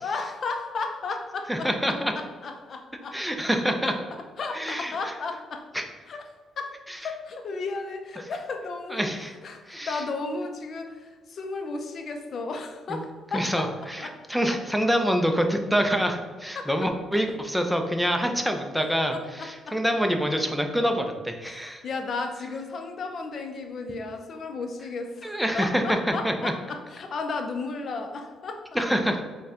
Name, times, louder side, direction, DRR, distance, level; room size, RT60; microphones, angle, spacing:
voice 1, 0.0-3.2 3.8-4.0 4.4-5.7 6.1-6.3 6.6-9.1 9.4-13.7 14.0-14.2 16.5-16.9 19.1-19.8 21.4-28.8, left 3 dB, 55° left, 5 dB, 0.5 m, -34 dB
voice 2, 1.5-2.1 3.1-3.9 4.5-4.9 5.7-5.8 8.9-9.3 9.7-10.0 12.9-13.0 13.3-21.8 25.2-26.0 26.2-26.5 28.8-29.2, equal, ahead, 4 dB, 0.5 m, -26 dB
4.1 x 2.2 x 3.6 m, 1.4 s
cardioid pair, 90°, 0 cm